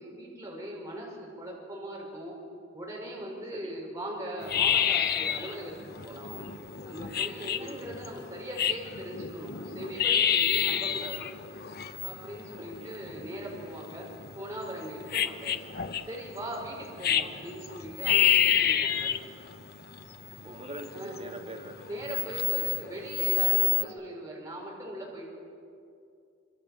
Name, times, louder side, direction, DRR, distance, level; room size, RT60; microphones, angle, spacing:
voice 1, 0.0-2.4 2.7-6.4 6.8-11.3 12.0-14.1 14.4-15.6 16.0-19.1 20.9-21.2 21.9-25.3, right 1 dB, 15° right, -3 dB, 5.7 m, -40 dB
sound 1, 4.4-23.8, left 8 dB, 50° left, 1.0 m, -29 dB
voice 2, 12.5-12.9 20.4-21.9 23.7-23.9, right 1 dB, 30° right, 0 dB, 2.7 m, -43 dB
26.0 x 25.5 x 7.5 m, 2.5 s
head